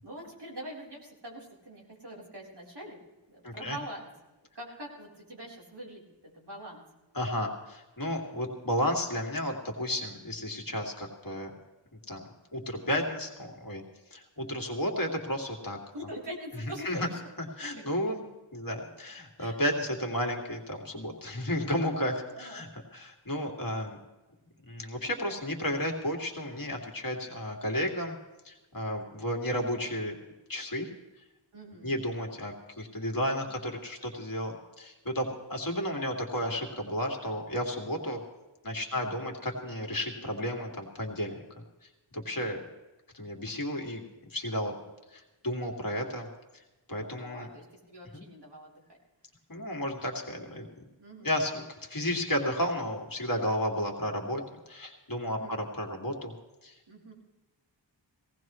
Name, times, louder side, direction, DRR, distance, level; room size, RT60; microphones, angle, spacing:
voice 1, 0.0-3.0 3.3-4.1 4.5-6.8 15.9-17.2 17.6-17.9 19.4-19.6 22.3-22.6 31.5-32.0 38.9-39.2 47.1-48.8 51.0-51.3 55.3-55.6 56.9-57.1, right 1 dB, 60° right, -3 dB, 3.9 m, -44 dB
voice 2, 3.4-3.8 7.1-11.5 12.1-12.2 12.5-13.8 14.1-15.8 16.8-17.1 17.6-18.3 18.5-24.0 24.7-28.2 28.4-30.1 30.5-30.9 31.8-38.2 38.6-41.4 42.1-42.6 43.1-44.0 44.3-44.7 45.1-46.3 46.9-47.5 48.1-48.2 49.5-50.7 51.2-51.6 51.9-54.4 54.7-56.3 56.6-56.7, left 1 dB, 45° left, 1 dB, 2.4 m, -32 dB
18.5 x 17.0 x 3.1 m, 1.1 s
wide cardioid pair, 75°, 45 cm